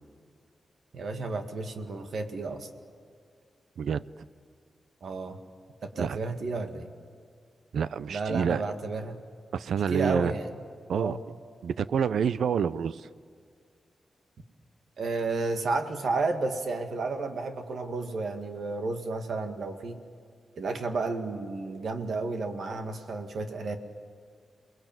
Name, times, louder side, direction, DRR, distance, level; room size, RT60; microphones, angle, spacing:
voice 1, 0.9-2.7 5.0-5.4 5.8-6.9 8.1-9.2 9.9-10.5 10.9-11.2 15.0-20.0 20.6-23.8, right 3 dB, 65° right, 6 dB, 2.0 m, -32 dB
voice 2, 7.7-8.6 9.5-10.3 10.9-11.2 11.6-13.1, right 7 dB, 90° right, 16 dB, 0.6 m, -28 dB
28.5 x 20.5 x 9.1 m, 2.2 s
wide cardioid pair, 130°, 0 cm